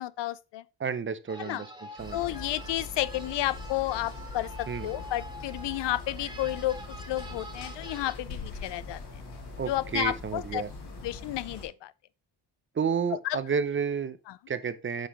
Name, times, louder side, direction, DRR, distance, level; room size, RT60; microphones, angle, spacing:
voice 1, 0.0-0.6 1.4-1.6 2.1-6.8 7.1-9.0 9.7-10.6 11.0-11.9 13.2-13.4 14.3-14.4, left 15 dB, 80° left, 0.5 m, -31 dB
voice 2, 0.8-1.7 2.0-2.4 4.7-4.9 9.6-10.7 12.8-14.2 14.5-15.1, right 6 dB, 30° right, 0.5 m, -31 dB
sound 1, 1.3-8.1, equal, 10° right, 1.7 m, -46 dB
sound 2, 2.0-11.6, left 3 dB, 65° left, 2.6 m, -42 dB
8.1 x 5.7 x 2.9 m
wide cardioid pair, 150°, 42 cm